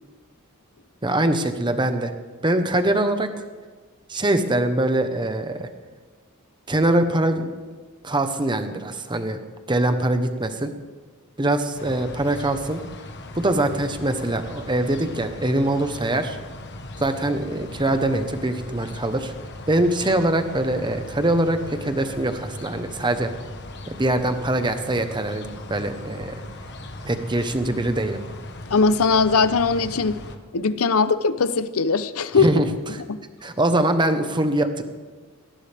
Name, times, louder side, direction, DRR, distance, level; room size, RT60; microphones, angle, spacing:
voice 1, 1.0-2.1 2.4-3.3 4.1-5.7 6.7-7.6 8.0-9.4 9.7-10.7 11.4-12.8 13.3-16.4 17.0-19.3 19.7-23.3 23.9-26.4 27.0-28.2 32.3-32.6 32.9-33.0 33.4-34.8, right 1 dB, 20° right, 8 dB, 1.0 m, -23 dB
sound 1, 11.7-30.4, left 2 dB, 50° left, 1.3 m, -38 dB
voice 2, 28.7-30.2 30.5-32.5 33.1-33.2, left 4 dB, 80° left, 14 dB, 0.7 m, -20 dB
19.0 x 16.5 x 3.5 m, 1.4 s
head